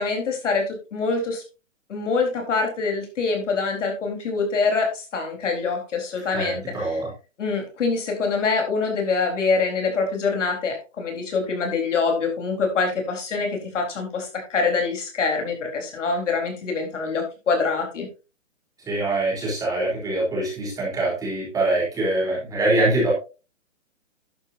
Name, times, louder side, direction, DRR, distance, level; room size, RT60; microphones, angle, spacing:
voice 1, 0.0-1.4 1.9-7.0 7.4-13.5 13.7-18.1, left 4 dB, 65° left, 3 dB, 4.2 m, -25 dB
voice 2, 6.3-7.1 18.9-23.1, right 2 dB, 10° right, -4 dB, 3.8 m, -24 dB
11.0 x 9.7 x 2.7 m, 0.31 s
hypercardioid pair, 160°, 38 cm